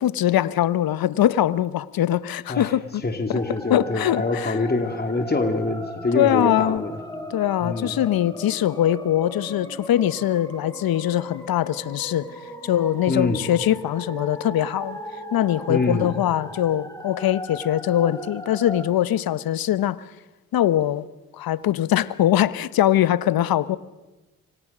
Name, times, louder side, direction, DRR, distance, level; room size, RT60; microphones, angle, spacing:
voice 1, 0.0-3.0 3.7-4.6 6.1-6.8 7.3-12.3 12.6-15.0 15.3-20.0 20.5-21.0 21.3-23.8, left 12 dB, 60° left, 1.2 m, -22 dB
voice 2, 3.0-7.0 7.6-8.0 13.1-13.4 15.7-16.1, left 3 dB, 25° left, 3.8 m, -25 dB
sound 1, 3.3-18.9, equal, 10° left, 5.7 m, -37 dB
28.5 x 25.0 x 6.2 m
hypercardioid pair, 45°, 40 cm